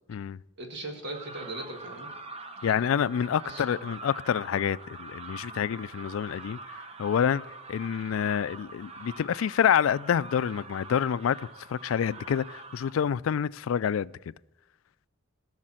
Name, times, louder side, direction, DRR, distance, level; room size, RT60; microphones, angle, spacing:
voice 1, 0.6-2.1 2.6-2.8 3.4-3.8, right 2 dB, 55° right, 1.8 m, -39 dB
sound 1, 1.1-12.9, right 3 dB, 30° right, 0.8 m, -44 dB
voice 2, 2.6-6.6 7.0-7.4 7.7-11.4 11.7-14.3, left 8 dB, 85° left, 0.3 m, -27 dB
16.5 x 6.6 x 7.6 m
head